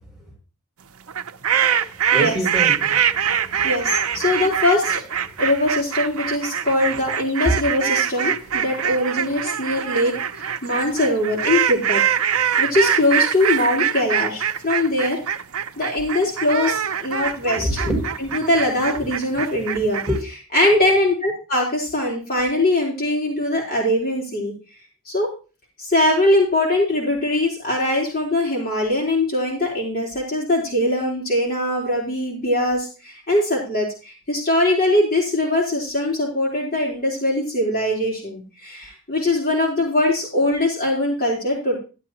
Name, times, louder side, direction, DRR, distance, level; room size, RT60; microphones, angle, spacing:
sound 1, 1.1-20.2, right 8 dB, 70° right, 0.7 m, -23 dB
voice 1, 2.1-3.7 6.9-7.0 17.6-18.4 19.6-20.1, right 1 dB, ahead, -1 dB, 6.4 m, -27 dB
voice 2, 3.6-5.0 5.4-12.0 12.6-15.2 15.8-17.8 18.3-20.0 20.5-24.5 25.1-25.3 25.8-41.8, left 1 dB, 40° left, -3 dB, 3.8 m, -21 dB
12.5 x 11.5 x 3.0 m, 0.33 s
head